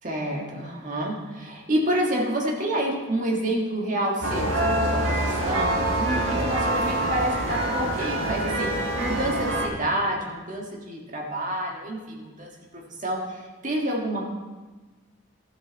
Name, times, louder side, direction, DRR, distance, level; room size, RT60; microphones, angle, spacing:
voice 1, 0.0-14.3, right 1 dB, 40° right, -1 dB, 1.6 m, -28 dB
sound 1, 4.2-9.7, right 1 dB, 70° right, 1.7 m, -25 dB
13.0 x 6.9 x 4.1 m, 1.3 s
head